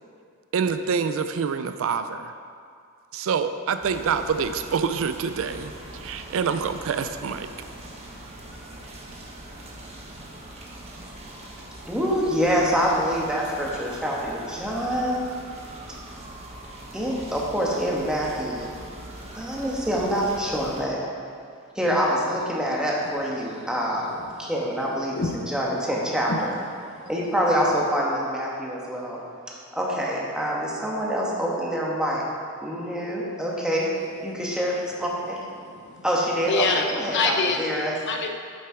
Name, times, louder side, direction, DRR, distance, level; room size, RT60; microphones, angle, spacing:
voice 1, 0.5-2.3 3.1-5.7 6.0-7.5, right 6 dB, 65° right, 10 dB, 0.4 m, -26 dB
sound 1, 3.8-20.8, right 1 dB, 30° right, 1.1 m, -42 dB
voice 2, 11.9-15.3 16.9-18.7 19.3-21.0 21.7-24.1 24.4-25.2 25.5-26.5 27.1-29.2 29.7-32.3 32.6-33.9 34.2-35.3 36.0-37.9, equal, 5° right, -4 dB, 1.3 m, -26 dB
voice 3, 24.1-24.5 25.1-25.4 26.3-26.4 26.8-27.1 35.7-36.0 36.5-37.6 38.1-38.3, left 3 dB, 55° left, 2 dB, 0.8 m, -26 dB
8.6 x 6.7 x 4.5 m, 2.3 s
head